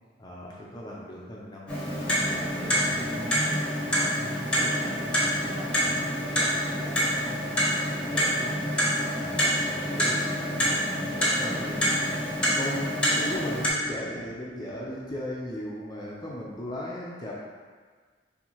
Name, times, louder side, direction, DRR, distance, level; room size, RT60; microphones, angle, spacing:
voice 1, 0.2-3.4 4.2-4.5 9.1-17.3, left 1 dB, 25° left, -5 dB, 0.5 m, -38 dB
Clock, 1.7-13.7, equal, 5° left, 0.9 m, -27 dB
voice 2, 3.8-8.7, equal, 30° right, -7 dB, 1.1 m, -43 dB
4.5 x 3.4 x 2.9 m, 1.5 s
head